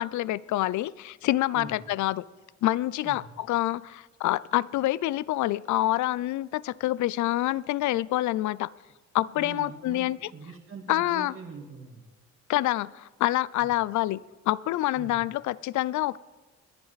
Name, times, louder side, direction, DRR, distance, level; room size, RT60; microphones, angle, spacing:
voice 1, 0.0-2.2 2.6-8.7 9.1-10.3 10.9-11.3 12.5-14.2 14.5-16.2, left 15 dB, 70° left, 21 dB, 0.5 m, -27 dB
voice 2, 9.4-12.0 13.6-13.7 15.0-15.2, right 5 dB, 45° right, -1 dB, 2.0 m, -43 dB
21.5 x 10.5 x 4.1 m, 1.3 s
cardioid pair, 90°, 30 cm